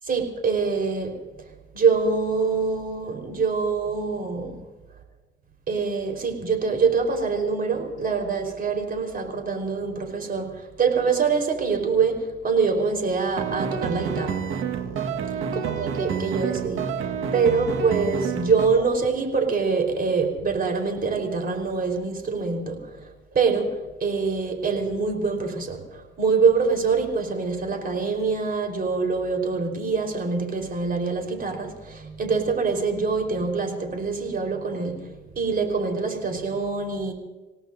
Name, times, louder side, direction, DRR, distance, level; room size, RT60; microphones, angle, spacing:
voice 1, 0.1-1.2 1.7-4.6 5.7-14.5 14.9-37.1, right 5 dB, 45° right, 4 dB, 4.4 m, -25 dB
sound 1, 13.4-18.7, right 7 dB, 80° right, 1.6 m, -28 dB
28.0 x 17.5 x 2.7 m, 1.2 s
cardioid pair, 90°, 20 cm